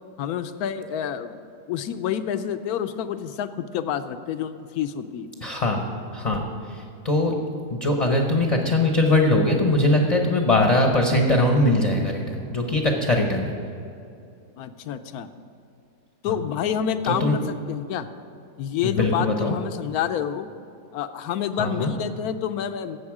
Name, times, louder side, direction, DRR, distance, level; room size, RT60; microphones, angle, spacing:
voice 1, 0.2-1.4 1.7-5.3 14.6-15.3 16.2-18.1 18.6-20.5 20.9-23.0, left 9 dB, 70° left, 10 dB, 1.0 m, -28 dB
voice 2, 5.4-5.8 6.1-7.3 7.7-13.5 16.3-16.4 17.0-17.4 18.8-19.6 21.6-21.9, left 2 dB, 30° left, 2 dB, 0.7 m, -21 dB
13.5 x 8.2 x 4.8 m, 2.6 s
omnidirectional pair, 1.8 m